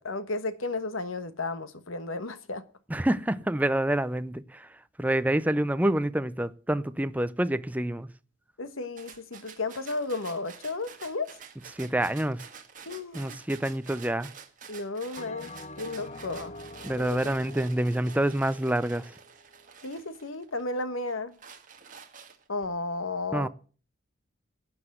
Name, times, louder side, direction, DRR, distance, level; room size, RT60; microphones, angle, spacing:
voice 1, 0.0-2.6 8.6-11.3 12.9-13.4 14.7-15.5 15.8-16.6 17.0-17.2 19.8-21.3 22.5-23.5, left 3 dB, 80° left, 1.3 m, -33 dB
voice 2, 2.9-4.7 5.0-8.1 11.7-12.4 13.1-14.3 16.8-19.0 23.3-23.5, right 1 dB, 10° right, 0.5 m, -27 dB
sound 1, 9.0-20.6 21.1-22.6, right 7 dB, 40° right, 1.7 m, -49 dB
Bell, 15.2-19.8, left 2 dB, 35° left, 0.8 m, -46 dB
12.0 x 7.8 x 7.8 m
head